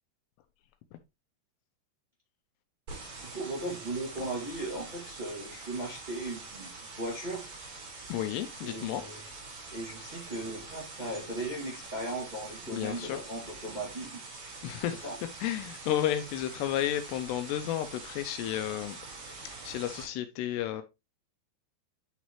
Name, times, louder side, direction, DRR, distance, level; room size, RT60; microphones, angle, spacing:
sound 1, 2.9-20.0, right 3 dB, 60° right, 5.9 m, -45 dB
voice 1, 3.2-6.7 7.0-7.5 8.6-9.3 9.7-14.2 14.9-15.2, right 1 dB, 45° right, 0.5 m, -37 dB
voice 2, 8.1-9.0 12.7-13.2 14.6-15.0 15.4-19.0 19.6-20.8, left 12 dB, 85° left, 2.4 m, -32 dB
10.0 x 4.1 x 3.1 m
omnidirectional pair, 5.4 m